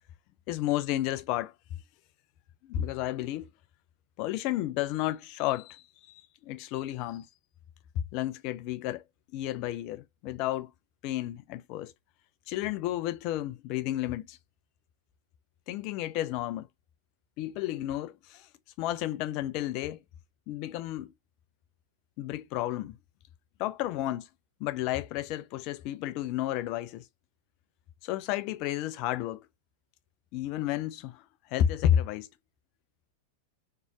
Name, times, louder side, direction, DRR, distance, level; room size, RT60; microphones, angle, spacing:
voice 1, 0.5-1.5 2.6-3.5 4.2-7.3 7.9-9.0 9.3-10.7 11.0-11.9 12.5-14.4 15.7-16.7 17.4-18.5 18.8-20.0 20.5-21.1 22.2-23.0 23.6-24.3 24.6-27.0 28.0-29.5 30.3-31.2 31.5-32.3, left 12 dB, 45° left, 0.4 m, -32 dB
3.0 x 2.7 x 2.2 m
figure-of-eight pair, 90°, 0 cm